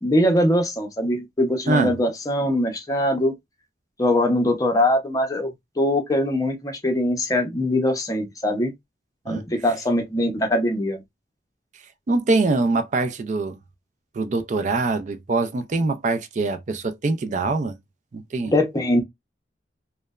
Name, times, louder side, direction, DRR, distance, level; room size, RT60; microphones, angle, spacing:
voice 1, 0.0-3.3 4.0-5.5 5.8-8.7 9.3-11.0 18.5-19.0, left 1 dB, 20° left, 0.6 m, -22 dB
voice 2, 12.1-13.6 14.1-17.8 18.1-18.5, right 3 dB, 45° right, 0.4 m, -23 dB
3.1 x 2.1 x 2.3 m
head